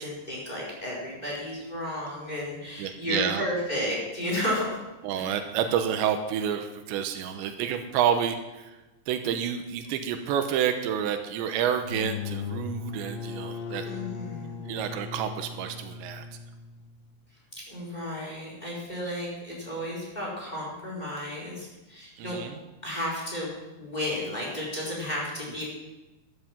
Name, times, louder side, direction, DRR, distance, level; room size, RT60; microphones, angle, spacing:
voice 1, 0.0-4.7 5.2-5.3 13.8-14.6 17.7-22.5 22.8-25.6, left 1 dB, 10° left, -4 dB, 4.4 m, -33 dB
voice 2, 2.8-3.5 5.0-8.8 9.1-13.9 14.7-16.2 22.2-22.6, right 9 dB, 85° right, 7 dB, 3.2 m, -29 dB
sound 1, 11.7-17.3, left 5 dB, 90° left, 4.3 m, -38 dB
13.0 x 12.5 x 6.0 m, 1.1 s
omnidirectional pair, 5.1 m